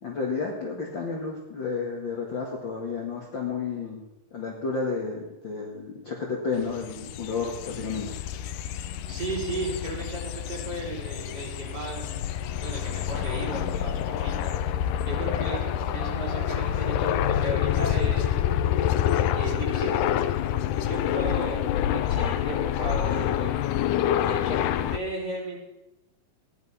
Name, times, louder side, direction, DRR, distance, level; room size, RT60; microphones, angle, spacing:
voice 1, 0.0-4.0 4.3-8.1, left 4 dB, 40° left, -1 dB, 2.0 m, -31 dB
sound 1, 6.6-25.0, left 10 dB, 80° left, 1.9 m, -27 dB
voice 2, 9.1-12.0 12.6-14.5 15.0-18.5 19.3-19.9 20.7-23.5 24.2-25.6, right 2 dB, 25° right, -4 dB, 4.5 m, -35 dB
15.5 x 11.0 x 5.8 m, 0.97 s
omnidirectional pair, 4.2 m